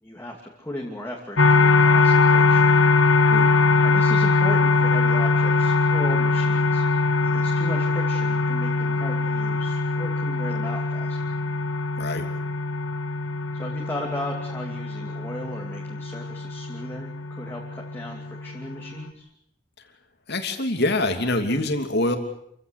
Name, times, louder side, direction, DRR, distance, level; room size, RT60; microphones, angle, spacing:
voice 1, 0.0-2.6 3.3-3.5 3.8-6.8 7.2-11.2 13.5-19.3, left 1 dB, 10° left, -1 dB, 2.7 m, -36 dB
sound 1, 1.4-19.1, left 3 dB, 80° left, 1.8 m, -22 dB
voice 2, 20.3-22.2, left 2 dB, 60° left, 6 dB, 3.0 m, -24 dB
28.0 x 16.0 x 8.4 m, 0.76 s
head